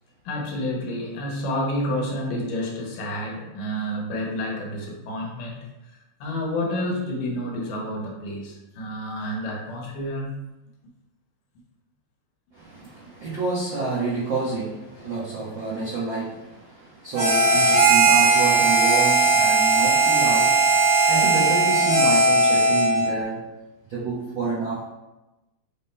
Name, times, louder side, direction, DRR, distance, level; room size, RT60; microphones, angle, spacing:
voice 1, 0.3-5.6 6.2-10.4, left 1 dB, 70° left, -1 dB, 2.5 m, -29 dB
voice 2, 12.5-23.4 23.9-24.9, right 4 dB, 70° right, -8 dB, 1.1 m, -29 dB
Harmonica, 17.1-23.1, right 3 dB, 30° right, 1.6 m, -18 dB
6.3 x 3.6 x 4.2 m, 1.0 s
omnidirectional pair, 4.0 m